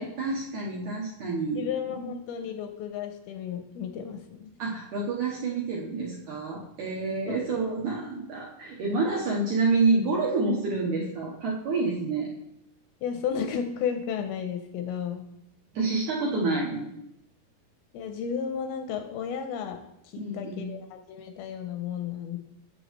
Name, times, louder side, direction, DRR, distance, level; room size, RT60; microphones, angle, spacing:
voice 1, 0.0-1.7 2.1-2.2 4.6-12.3 15.7-16.9 20.2-20.7, right 3 dB, 70° right, -4 dB, 2.0 m, -28 dB
voice 2, 1.6-4.5 7.3-7.4 13.0-15.3 17.9-19.8 20.0-22.4, left 7 dB, 80° left, 6 dB, 2.4 m, -33 dB
8.0 x 7.6 x 3.1 m, 0.79 s
omnidirectional pair, 4.6 m